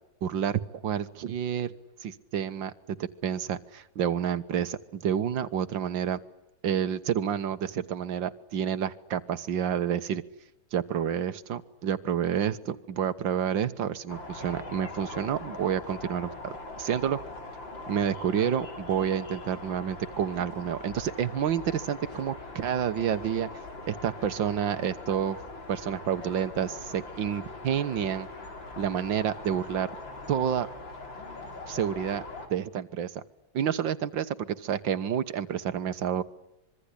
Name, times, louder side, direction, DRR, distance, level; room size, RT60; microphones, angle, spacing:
voice 1, 0.2-1.7 2.0-6.2 6.6-10.2 10.7-17.2 17.9-23.5 23.9-25.4 25.7-28.3 28.8-29.9 30.3-30.7 31.7-32.2 32.5-33.2 33.5-36.2, right 9 dB, 80° right, 12 dB, 2.0 m, -29 dB
sound 1, 14.1-32.5, left 2 dB, 85° left, 4.6 m, -42 dB
25.5 x 23.5 x 9.9 m, 0.91 s
omnidirectional pair, 2.0 m